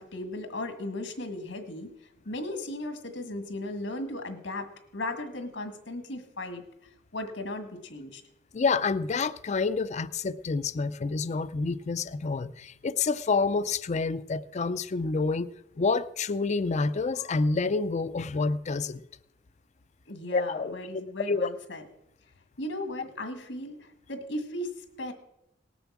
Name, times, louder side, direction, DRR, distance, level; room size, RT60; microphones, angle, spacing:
voice 1, 0.0-1.9 2.3-4.7 4.9-6.6 7.1-8.2 20.1-21.8 22.6-25.1, left 1 dB, 80° left, 1.9 m, -36 dB
voice 2, 8.5-15.5 15.8-19.0 20.3-20.7 21.3-21.5, left 4 dB, 40° left, 0.4 m, -28 dB
18.5 x 7.0 x 7.3 m
head